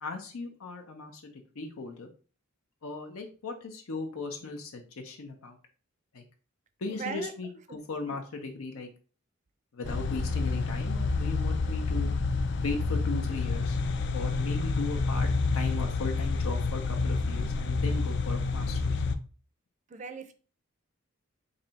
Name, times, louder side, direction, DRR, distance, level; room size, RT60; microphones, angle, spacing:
voice 1, 0.0-2.1 2.8-5.6 6.1-6.2 6.8-8.9 9.7-12.1 12.6-13.8 14.1-19.0, left 3 dB, 90° left, 0.6 m, -37 dB
voice 2, 6.9-7.3 7.7-7.8 8.1-8.2 19.9-20.3, right 5 dB, 35° right, 0.4 m, -39 dB
sound 1, 9.8-19.2, left 3 dB, 55° left, 0.3 m, -28 dB
3.2 x 2.7 x 4.0 m
head